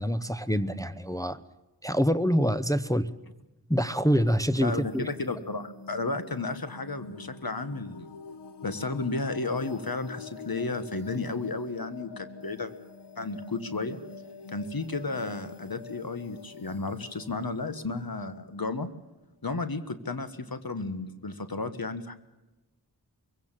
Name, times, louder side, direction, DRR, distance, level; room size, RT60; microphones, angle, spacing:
voice 1, 0.0-1.4 1.8-3.1 3.7-5.1, equal, 10° left, 9 dB, 0.8 m, -26 dB
sound 1, 4.4-19.1, left 4 dB, 75° left, 1.1 m, -46 dB
voice 2, 4.6-8.1 8.6-12.7 13.2-14.0 14.5-18.9 19.4-22.2, left 3 dB, 60° left, 11 dB, 1.5 m, -33 dB
23.0 x 16.5 x 7.5 m, 1.1 s
wide cardioid pair, 50°, 41 cm